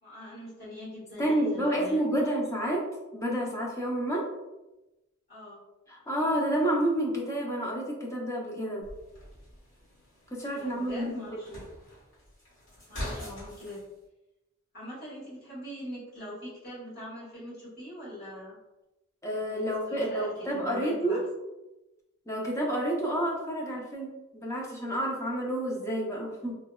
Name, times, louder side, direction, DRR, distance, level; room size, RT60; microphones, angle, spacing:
voice 1, 0.0-2.2 5.3-5.6 10.5-11.5 12.9-13.8 14.7-18.6 19.4-21.2, equal, 50° left, -9 dB, 1.5 m, -42 dB
voice 2, 1.2-2.8 3.1-4.3 5.9-8.9 10.3-11.6 19.2-21.2 22.3-26.5, right 1 dB, 15° left, -3 dB, 0.6 m, -29 dB
sound 1, 8.8-13.8, left 1 dB, 70° left, 1.2 m, -43 dB
3.2 x 2.1 x 2.2 m, 1.0 s
head